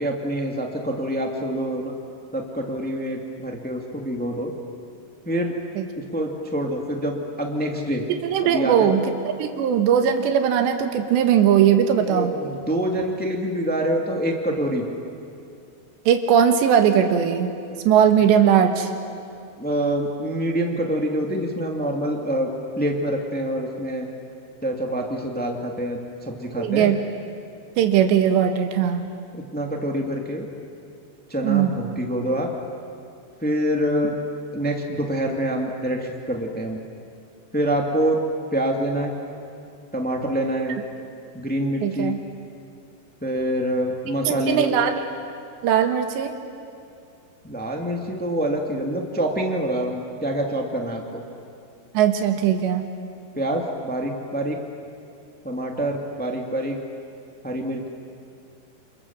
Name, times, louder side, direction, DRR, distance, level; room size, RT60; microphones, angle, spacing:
voice 1, 0.0-1.9 2.3-4.5 5.2-5.6 6.0-8.0 8.4-8.9 12.1-14.8 19.6-22.5 22.7-24.1 24.6-26.9 29.3-30.5 31.3-32.5 33.4-34.2 34.5-36.8 37.5-38.2 38.5-39.1 39.9-40.8 41.3-42.2 43.2-44.7 47.4-51.2 53.3-54.6 55.4-56.8 57.4-57.9, right 1 dB, 10° left, 1 dB, 0.4 m, -26 dB
voice 2, 8.1-9.0 9.4-12.3 16.1-17.5 17.9-18.9 26.6-27.0 27.8-29.0 31.4-31.7 41.8-42.2 44.3-45.0 45.6-46.3 52.0-52.9, right 8 dB, 90° right, 6 dB, 3.7 m, -19 dB
28.5 x 28.0 x 7.3 m, 2.5 s
omnidirectional pair, 4.9 m